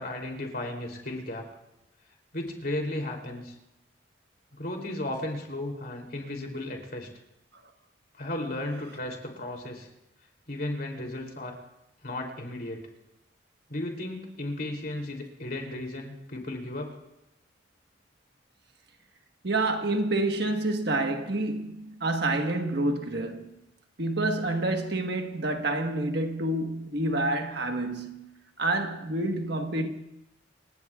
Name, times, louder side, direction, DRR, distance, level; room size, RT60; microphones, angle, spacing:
voice 1, 0.0-1.5 2.3-3.5 4.5-7.1 8.1-9.9 10.5-11.6 12.0-12.8 13.7-17.0, left 1 dB, 50° left, 3.2 m, -34 dB
voice 2, 19.4-23.6 24.0-28.3 28.6-29.9, right 2 dB, 60° right, 1.4 m, -28 dB
28.5 x 17.5 x 2.4 m
head